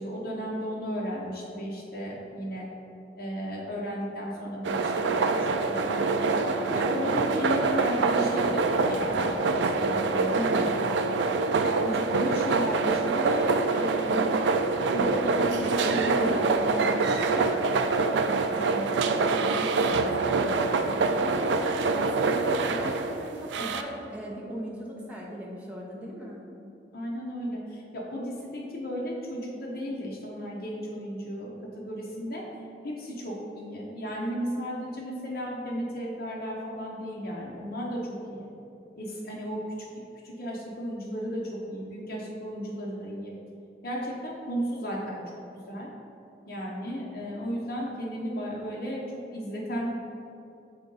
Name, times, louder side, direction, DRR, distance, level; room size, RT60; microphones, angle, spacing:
voice 1, 0.0-2.7 3.2-10.9 11.6-14.3 14.9-17.5 26.9-32.4 32.8-38.5 39.0-39.6 40.2-43.3 43.8-45.2 45.7-45.9 46.5-49.0 49.3-50.0, equal, 55° left, -4 dB, 0.8 m, -34 dB
sound 1, 4.6-23.8, right 3 dB, 75° right, 0.3 m, -25 dB
voice 2, 18.6-26.5, equal, 10° right, -4 dB, 0.8 m, -39 dB
6.9 x 3.7 x 3.9 m, 2.8 s
head